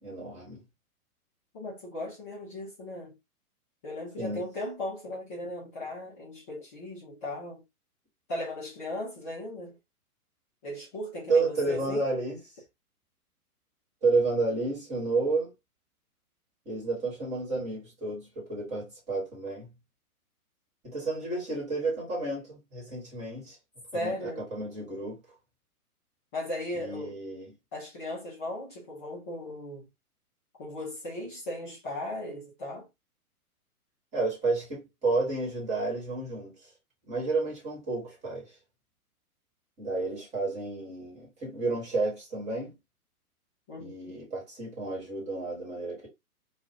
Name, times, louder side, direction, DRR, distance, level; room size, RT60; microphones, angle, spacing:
voice 1, 0.0-0.6 4.2-4.5 11.3-12.4 14.0-15.5 16.6-19.7 20.8-23.6 23.9-25.2 26.7-27.5 34.1-36.5 37.1-38.5 39.8-42.7 43.8-46.1, right 3 dB, 15° right, 1.4 m, -31 dB
voice 2, 1.5-3.1 3.8-7.6 8.3-9.8 10.6-12.0 23.9-24.5 26.3-27.2 27.7-29.9 30.6-32.9 43.7-44.2, left 1 dB, 10° left, 0.5 m, -37 dB
2.4 x 2.4 x 2.7 m
figure-of-eight pair, 130°, 45 cm